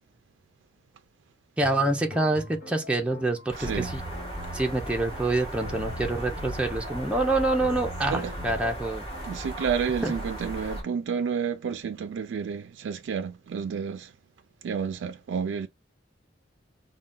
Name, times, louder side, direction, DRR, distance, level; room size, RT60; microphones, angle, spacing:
sound 1, 1.6-9.5, left 1 dB, 50° left, 1.2 m, -42 dB
voice 1, 1.6-4.0 4.5-9.0 10.0-10.1, right 2 dB, 5° right, 0.5 m, -26 dB
sound 2, 3.5-10.8, right 1 dB, 25° left, 2.2 m, -37 dB
voice 2, 3.6-3.9 8.0-8.3 9.2-14.1 14.6-15.7, right 6 dB, 85° right, 0.3 m, -30 dB
3.8 x 2.2 x 3.7 m
head